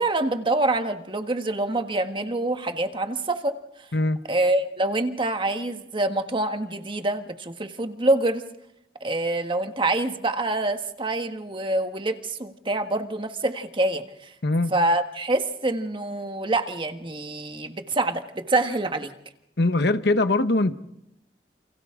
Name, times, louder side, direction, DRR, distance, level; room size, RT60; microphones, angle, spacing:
voice 1, 0.0-3.6 4.3-8.4 9.0-14.3 14.7-19.1, right 2 dB, 30° right, 1.5 m, -26 dB
voice 2, 14.4-14.7 19.6-20.7, left 2 dB, 65° left, 1.1 m, -21 dB
29.5 x 28.0 x 3.8 m
head